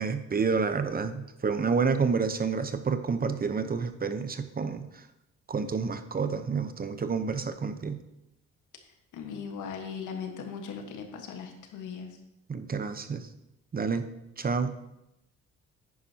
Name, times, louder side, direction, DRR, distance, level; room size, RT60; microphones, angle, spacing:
voice 1, 0.0-5.0 5.5-8.0 12.5-13.3 13.7-14.1 14.4-14.7, right 5 dB, 30° right, 10 dB, 0.8 m, -29 dB
voice 2, 9.1-12.2, left 6 dB, 85° left, 4 dB, 1.5 m, -38 dB
10.0 x 9.6 x 2.8 m, 0.86 s
cardioid pair, 90°, 30 cm